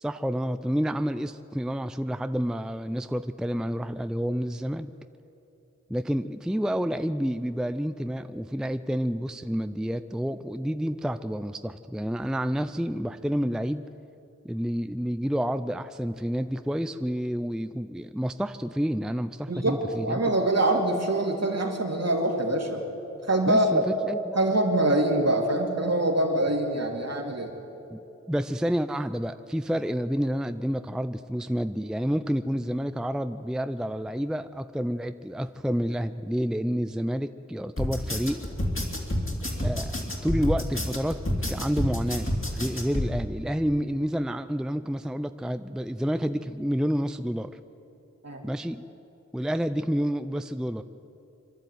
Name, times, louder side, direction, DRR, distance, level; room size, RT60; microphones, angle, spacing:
voice 1, 0.0-4.9 5.9-13.8 14.4-20.3 23.5-24.4 27.9-28.0 28.3-38.4 39.6-47.6 48.4-48.8 49.3-50.8, equal, ahead, 11 dB, 0.5 m, -29 dB
voice 2, 19.5-22.8 23.3-23.9 24.3-27.5 48.2-48.4, right 1 dB, 60° right, 1 dB, 2.9 m, -24 dB
sound 1, 37.8-43.1, left 1 dB, 45° left, 3.2 m, -28 dB
25.5 x 12.0 x 9.3 m, 2.9 s
wide cardioid pair, 55°, 29 cm